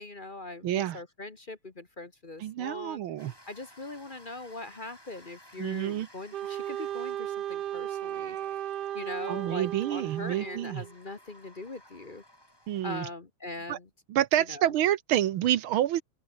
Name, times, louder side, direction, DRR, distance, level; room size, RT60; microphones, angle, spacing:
voice 1, 0.0-3.0 3.5-8.4 8.9-12.2 12.8-13.9 14.3-14.8, left 2 dB, 30° left, 1.2 m, -41 dB
voice 2, 0.6-1.0 2.4-3.3 5.6-6.1 9.3-10.8 12.7-13.1 13.7-13.8 14.1-16.0, right 12 dB, 80° right, 1.7 m, -28 dB
sound 1, 3.2-12.8, left 1 dB, 10° left, 6.3 m, -56 dB
Wind instrument woodwind instrument, 6.3-10.9, right 11 dB, 60° right, 1.3 m, -35 dB
open air
omnidirectional pair, 2.3 m